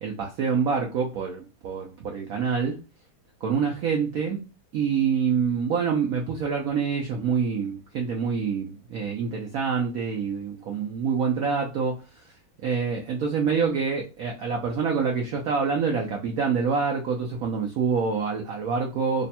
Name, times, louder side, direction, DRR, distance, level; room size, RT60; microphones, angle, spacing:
voice 1, 0.0-2.8 3.4-4.4 4.7-12.4 12.6-19.3, right 6 dB, 90° right, 0.7 m, -26 dB
3.4 x 2.1 x 4.1 m
omnidirectional pair, 2.2 m